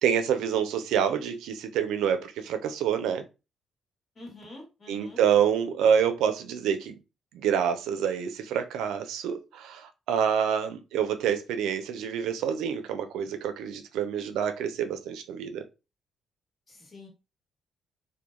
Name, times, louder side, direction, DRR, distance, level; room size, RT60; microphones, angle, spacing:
voice 1, 0.0-3.2 4.9-6.9 7.3-15.6, right 8 dB, 90° right, 0.4 m, -27 dB
voice 2, 4.1-5.2 16.7-17.1, left 2 dB, 35° left, 1.2 m, -46 dB
2.1 x 2.1 x 2.9 m
cardioid pair, 90°, 0 cm